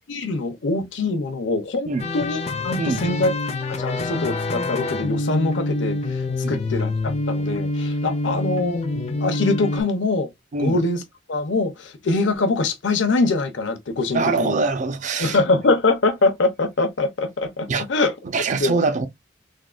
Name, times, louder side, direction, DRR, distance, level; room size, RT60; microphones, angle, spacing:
voice 1, 0.1-1.9 2.1-3.3 3.8-6.2 6.5-8.8 9.2-10.3 10.6-11.0 11.3-14.6 15.2-18.1 18.6-18.8, left 3 dB, 75° left, 0.7 m, -23 dB
sound 1, 2.0-9.8, left 2 dB, 35° left, 0.4 m, -26 dB
voice 2, 14.1-15.4 17.7-17.9 18.2-19.1, right 4 dB, 40° right, 0.4 m, -23 dB
3.5 x 2.1 x 2.3 m
head